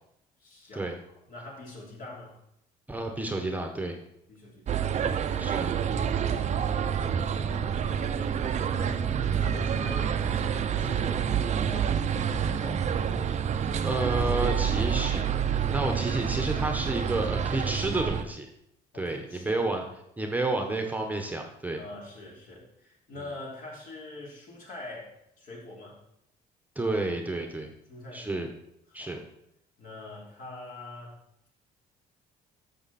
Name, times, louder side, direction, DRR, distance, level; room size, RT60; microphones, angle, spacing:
voice 1, 0.4-0.9 1.3-2.4 4.3-5.6 6.3-8.2 8.5-12.9 18.9-19.9 21.8-26.0 27.9-28.5 28.9-29.2 29.8-31.2, left 1 dB, 55° left, -3 dB, 3.6 m, -44 dB
voice 2, 2.9-4.0 5.4-5.7 13.8-18.5 18.9-19.8 20.2-21.8 26.7-27.7 28.1-28.5 28.9-29.2, right 2 dB, 10° right, 3 dB, 1.1 m, -30 dB
sound 1, 4.7-18.2, right 8 dB, 40° right, 0.7 m, -28 dB
11.5 x 7.0 x 4.3 m, 0.77 s
cardioid pair, 110°, 17 cm